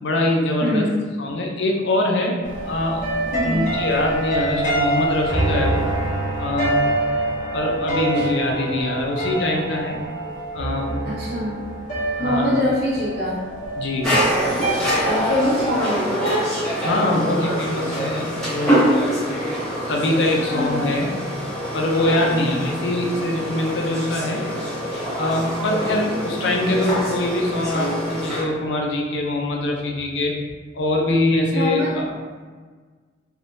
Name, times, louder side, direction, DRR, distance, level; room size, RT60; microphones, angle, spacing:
voice 1, 0.0-0.9 1.2-2.4 2.7-3.1 3.4-5.9 6.4-6.8 7.5-10.0 10.5-11.2 12.2-12.5 13.8-14.1 16.8-18.8 19.7-21.1 21.7-24.4 25.2-30.4 30.7-32.1, left 1 dB, 70° left, 0 dB, 0.5 m, -23 dB
voice 2, 0.6-1.0 3.3-3.7 8.2-8.3 11.0-11.5 12.2-13.4 15.0-16.3 20.2-20.9 22.1-22.6 26.0-26.6 31.5-31.9, left 1 dB, 60° right, -8 dB, 1.0 m, -24 dB
sound 1, 2.4-15.7, right 2 dB, 45° left, 0.8 m, -26 dB
sound 2, 14.0-28.4, equal, 5° left, 1.0 m, -25 dB
3.4 x 2.3 x 2.6 m, 1.5 s
head